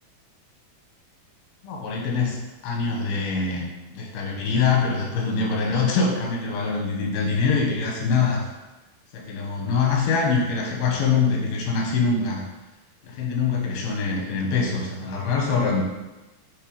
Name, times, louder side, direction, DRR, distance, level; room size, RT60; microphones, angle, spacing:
voice 1, 1.6-2.4 2.6-8.5 9.1-12.4 13.1-15.8, left 4 dB, 85° left, -1 dB, 3.1 m, -24 dB
8.2 x 3.2 x 4.8 m, 1.1 s
omnidirectional pair, 4.2 m